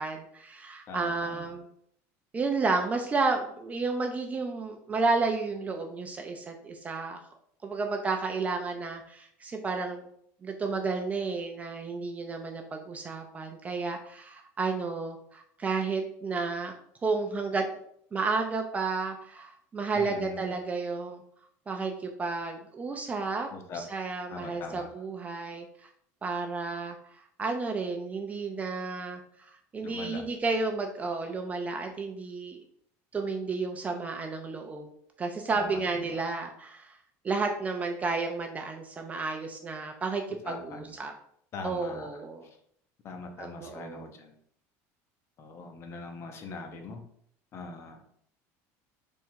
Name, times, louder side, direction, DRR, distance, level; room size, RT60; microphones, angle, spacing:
voice 1, 0.0-1.7 2.3-7.2 7.6-10.1 10.4-16.7 17.0-17.7 18.1-21.2 21.7-23.5 23.7-25.9 26.2-32.6 33.1-34.9 35.2-37.0 37.2-41.1 41.6-42.4 43.4-44.1, right 4 dB, 20° right, 3 dB, 0.4 m, -32 dB
voice 2, 0.9-1.5 19.9-20.6 23.5-23.8 24.3-24.9 29.8-30.2 35.5-36.2 40.4-41.0 41.5-42.1 43.0-44.3 45.4-47.0 47.5-48.0, left 3 dB, 35° left, 5 dB, 0.8 m, -41 dB
3.6 x 3.1 x 4.5 m, 0.67 s
cardioid pair, 155°, 8 cm